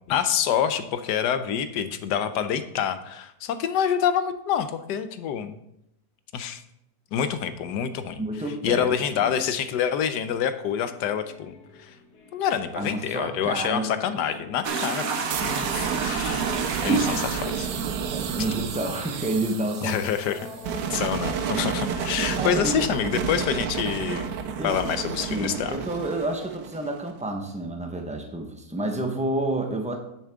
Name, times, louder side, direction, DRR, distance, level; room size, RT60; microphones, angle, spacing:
voice 1, 0.1-5.6 6.3-6.6 7.1-8.2 8.6-12.0 12.3-15.0 15.4-16.5 16.8-17.7 19.8-20.5 20.9-24.3 24.6-25.8, left 8 dB, 85° left, 10 dB, 1.3 m, -27 dB
voice 2, 8.2-9.4 12.8-13.9 16.8-17.0 18.1-20.0 22.4-22.9 24.6-24.8 25.3-30.0, right 1 dB, 5° right, 3 dB, 0.9 m, -29 dB
sound 1, 10.8-26.5, left 2 dB, 65° left, 1.9 m, -48 dB
sound 2, 14.6-23.2 23.4-24.8, right 5 dB, 60° right, 1.4 m, -30 dB
sound 3, 15.3-27.1, right 7 dB, 85° right, 1.4 m, -31 dB
10.0 x 7.1 x 3.6 m, 0.79 s
omnidirectional pair, 1.8 m